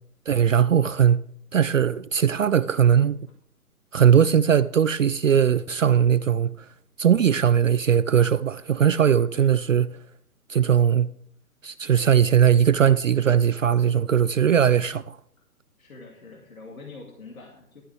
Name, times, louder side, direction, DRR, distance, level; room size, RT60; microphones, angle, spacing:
voice 1, 0.3-1.2 1.5-3.2 3.9-6.7 7.0-9.9 10.5-11.1 11.6-15.0, right 8 dB, 60° right, 0.5 m, -19 dB
voice 2, 9.3-9.6 14.5-14.8 15.8-17.8, left 3 dB, 65° left, 2.4 m, -44 dB
12.5 x 12.0 x 3.4 m
figure-of-eight pair, 135°, 45 cm